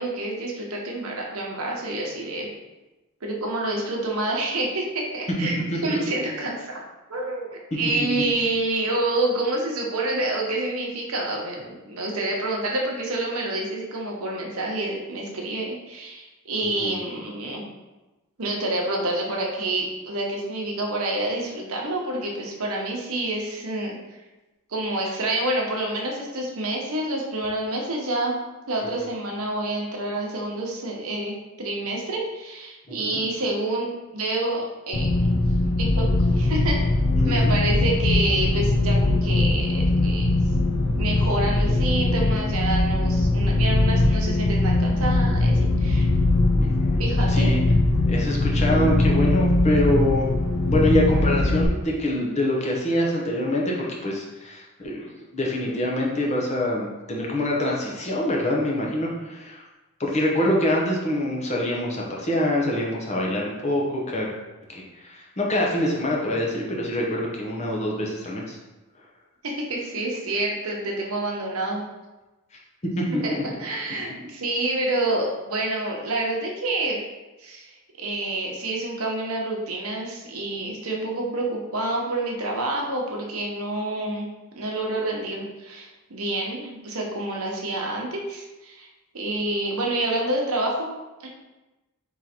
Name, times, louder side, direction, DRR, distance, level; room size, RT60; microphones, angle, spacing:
voice 1, 0.0-2.5 3.2-6.8 7.1-17.6 18.4-24.0 24.7-28.4 28.7-35.4 35.8-36.1 36.3-36.8 37.2-40.3 40.9-46.1 47.0-47.5 69.4-71.8 73.2-77.0 77.4-84.3 84.6-88.9 89.1-90.9, right 2 dB, 80° right, -1 dB, 1.0 m, -28 dB
voice 2, 16.6-17.0 32.9-33.2 37.2-37.5 46.6-47.0 47.3-47.6 48.1-50.3 50.7-55.1 55.3-59.6 60.0-64.3 64.7-68.6 73.0-73.2, left 1 dB, 30° left, -2 dB, 0.8 m, -25 dB
sound 1, 34.9-51.7, left 2 dB, 60° left, 0.6 m, -21 dB
3.9 x 3.1 x 4.3 m, 1.1 s
head